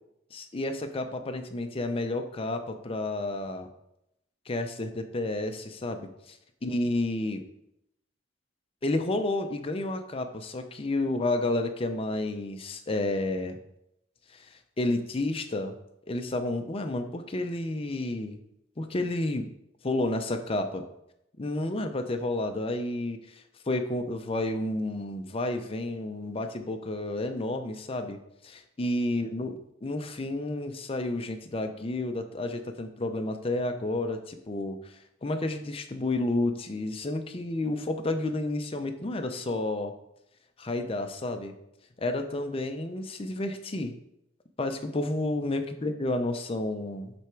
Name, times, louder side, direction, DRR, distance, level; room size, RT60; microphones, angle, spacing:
voice 1, 0.3-3.7 4.5-6.4 6.6-7.4 8.8-13.6 14.3-15.7 16.1-18.4 18.8-19.4 19.8-20.8 21.4-28.2 28.4-29.5 29.8-34.9 35.2-39.9 40.6-41.5 42.0-43.9 44.6-47.1, left 2 dB, 30° left, 6 dB, 0.6 m, -31 dB
7.9 x 3.4 x 4.5 m, 0.81 s
head